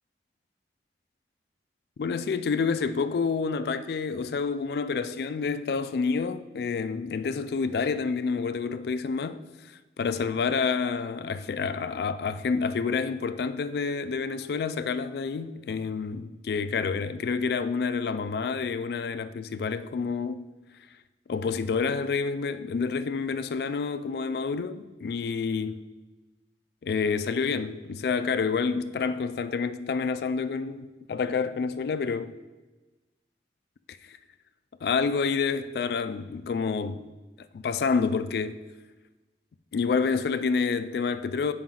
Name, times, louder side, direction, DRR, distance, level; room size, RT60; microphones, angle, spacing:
voice 1, 2.0-9.4 10.0-20.5 21.3-25.8 26.8-32.3 33.9-34.2 34.8-37.1 37.5-38.6 39.7-41.5, left 5 dB, 65° left, 0.3 m, -28 dB
7.2 x 5.0 x 3.8 m
head